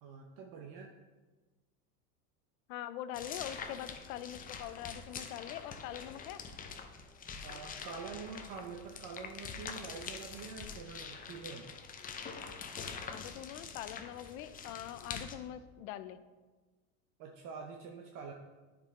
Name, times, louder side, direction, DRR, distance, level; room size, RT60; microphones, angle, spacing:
voice 1, 0.0-0.9 7.4-11.7 17.2-18.3, right 5 dB, 45° right, 2 dB, 0.8 m, -46 dB
voice 2, 2.7-6.4 13.1-16.2, left 12 dB, 65° left, 13 dB, 0.7 m, -43 dB
sound 1, 3.1-15.3, left 6 dB, 20° left, 0.6 m, -45 dB
10.5 x 4.8 x 3.7 m, 1.3 s
supercardioid pair, 120°, 43 cm